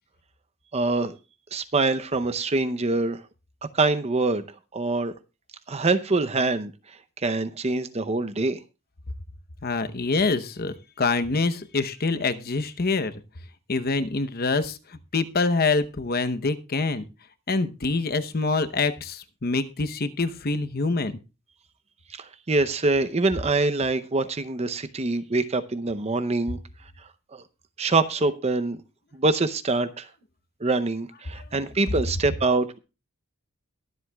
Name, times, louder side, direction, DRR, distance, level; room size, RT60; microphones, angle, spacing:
voice 1, 0.7-1.2 1.5-3.2 3.7-4.5 4.7-5.1 5.7-8.6 22.1-26.6 27.3-27.4 27.8-28.8 29.1-30.1 30.6-32.8, right 3 dB, 30° right, 0.7 m, -25 dB
voice 2, 9.6-13.2 13.7-17.0 17.5-21.2 31.3-31.4, left 3 dB, 45° left, 0.9 m, -25 dB
22.0 x 7.8 x 2.3 m
head